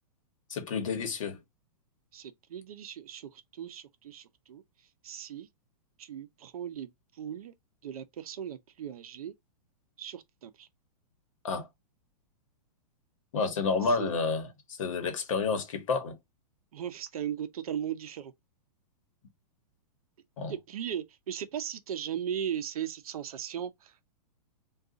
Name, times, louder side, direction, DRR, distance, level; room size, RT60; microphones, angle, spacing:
voice 1, 0.5-1.4 11.4-11.7 13.3-16.2 20.4-20.5, left 4 dB, 55° left, 1.0 m, -30 dB
voice 2, 2.1-4.6 5.0-5.5 6.0-7.5 7.8-9.3 10.0-10.7 13.8-14.1 16.7-18.3 20.5-24.0, right 9 dB, 65° right, 0.6 m, -38 dB
2.5 x 2.3 x 3.7 m
hypercardioid pair, 180°, 20 cm